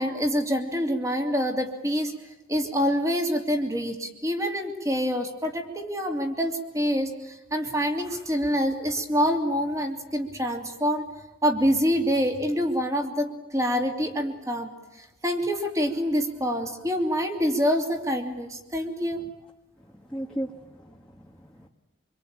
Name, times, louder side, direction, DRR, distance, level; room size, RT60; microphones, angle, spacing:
voice 1, 0.0-2.1 2.5-11.0 11.4-14.7 15.2-19.2, equal, 15° right, 4 dB, 2.9 m, -26 dB
voice 2, 19.8-21.7, right 1 dB, 5° left, -2 dB, 1.5 m, -37 dB
25.5 x 24.5 x 8.9 m, 1.0 s
head